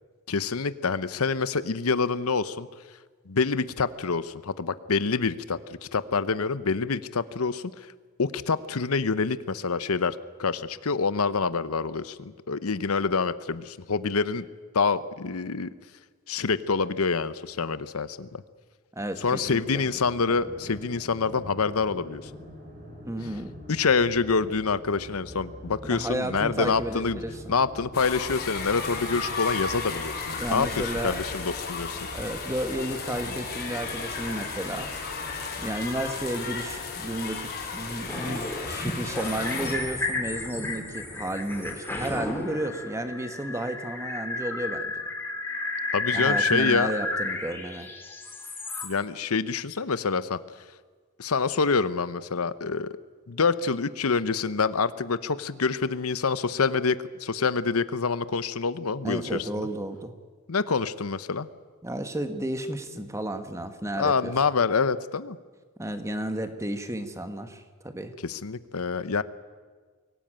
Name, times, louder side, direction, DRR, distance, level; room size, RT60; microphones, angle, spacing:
voice 1, 0.3-2.7 3.3-7.9 8.2-14.4 14.7-15.7 16.3-18.4 19.2-22.2 23.7-27.2 27.5-32.1 45.9-46.9 48.8-50.4 51.2-53.0 53.3-59.7 60.5-61.5 64.0-65.4 68.2-69.2, left 4 dB, 85° left, 14 dB, 0.9 m, -26 dB
voice 2, 18.9-19.8 23.0-23.5 25.9-27.6 30.4-31.2 32.1-34.9 35.6-45.1 46.1-47.9 59.0-60.1 61.8-64.3 65.8-68.1, right 1 dB, 15° right, 8 dB, 1.4 m, -32 dB
sound 1, 19.2-37.2, equal, 40° right, 5.2 m, -45 dB
sound 2, 27.9-39.8, left 4 dB, 50° left, 4.4 m, -34 dB
sound 3, 38.0-48.9, left 2 dB, 10° left, 3.2 m, -32 dB
23.5 x 17.5 x 8.9 m, 1.5 s
head